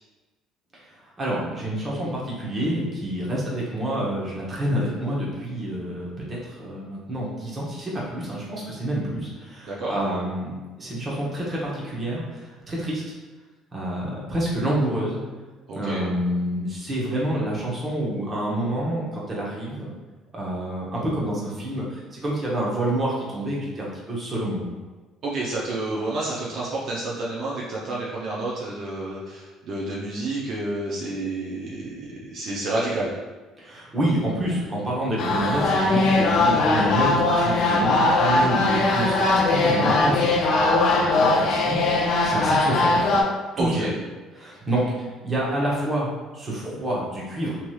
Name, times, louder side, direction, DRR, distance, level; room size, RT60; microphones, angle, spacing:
voice 1, 1.2-13.0 13.7-15.2 15.7-19.9 20.3-24.7 33.6-40.3 40.9-43.0 43.6-43.9 44.3-46.1 46.3-47.6, right 1 dB, 25° right, -5 dB, 0.8 m, -28 dB
voice 2, 15.7-16.0 25.2-33.1 43.6-43.9, right 2 dB, 55° right, -6 dB, 0.5 m, -29 dB
sound 1, 35.2-43.2, left 2 dB, 55° left, 0.4 m, -20 dB
3.1 x 2.8 x 2.3 m, 1.3 s
cardioid pair, 130°, 0 cm